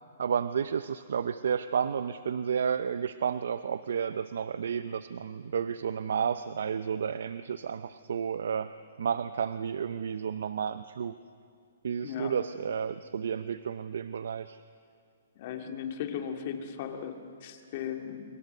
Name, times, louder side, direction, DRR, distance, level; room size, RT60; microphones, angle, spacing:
voice 1, 0.2-8.7 9.0-11.1 11.8-14.6, right 7 dB, 75° right, 12 dB, 0.6 m, -31 dB
voice 2, 12.0-12.3 15.4-18.2, left 8 dB, 40° left, 5 dB, 2.3 m, -37 dB
26.5 x 23.5 x 6.7 m, 2.3 s
hypercardioid pair, 155°, 0 cm